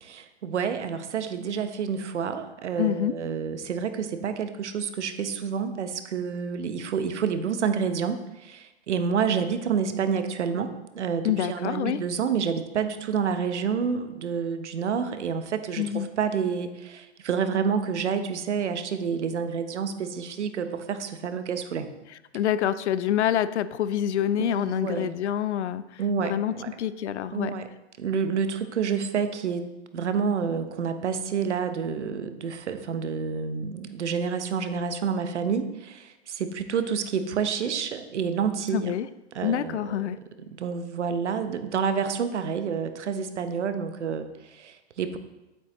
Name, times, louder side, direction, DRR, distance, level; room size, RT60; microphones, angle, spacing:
voice 1, 0.0-21.9 24.4-25.2 26.0-26.7 27.3-27.7 28.0-29.7 29.9-38.9 39.3-40.0 40.5-45.2, right 6 dB, 85° right, 9 dB, 1.0 m, -29 dB
voice 2, 2.8-3.1 11.2-12.0 15.8-16.1 22.3-27.5 38.7-39.1 39.4-40.2, left 10 dB, 75° left, 15 dB, 0.6 m, -27 dB
8.9 x 8.1 x 3.0 m, 0.98 s
hypercardioid pair, 120°, 34 cm